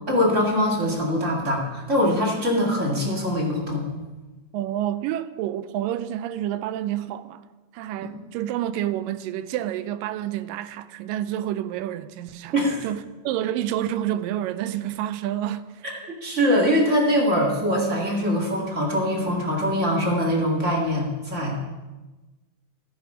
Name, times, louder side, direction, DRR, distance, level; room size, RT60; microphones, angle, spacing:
voice 1, 0.1-3.8 12.5-12.8 15.8-15.9 16.2-21.6, equal, 25° right, 1.9 m, -23 dB
voice 2, 4.5-7.5 7.7-15.8, right 12 dB, 80° right, 2.2 m, -29 dB
14.0 x 10.0 x 5.0 m
omnidirectional pair, 4.0 m